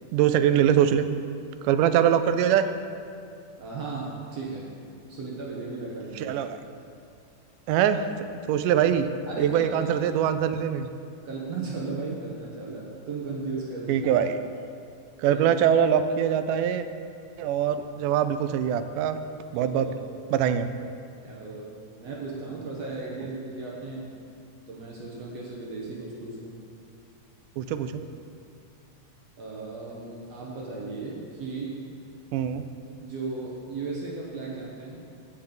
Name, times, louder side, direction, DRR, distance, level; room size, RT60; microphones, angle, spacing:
voice 1, 0.1-1.1 1.6-2.7 6.2-6.6 7.7-8.0 8.5-9.1 9.4-10.9 13.9-14.4 15.2-16.9 17.4-19.2 19.5-19.9 20.3-20.7 27.6-28.0 32.3-32.6, right 9 dB, 85° right, 10 dB, 2.1 m, -23 dB
voice 2, 3.6-4.6 5.1-6.4 9.3-10.0 11.2-14.1 15.2-15.4 19.5-20.0 21.2-21.7 22.0-24.0 24.7-26.5 29.4-31.7 33.0-35.0, right 3 dB, 65° right, -3 dB, 1.9 m, -35 dB
15.5 x 5.8 x 3.9 m, 2.5 s
omnidirectional pair, 3.7 m